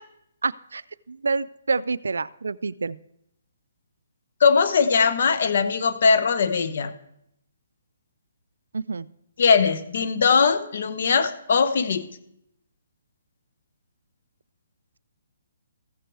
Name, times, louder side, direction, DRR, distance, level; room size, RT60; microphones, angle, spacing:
voice 1, 0.4-0.8 1.1-3.0 8.7-9.1, right 4 dB, 90° right, 18 dB, 0.3 m, -27 dB
voice 2, 4.4-6.9 9.4-12.1, left 5 dB, 60° left, 11 dB, 0.8 m, -20 dB
14.5 x 6.1 x 4.7 m, 0.77 s
hypercardioid pair, 155°, 0 cm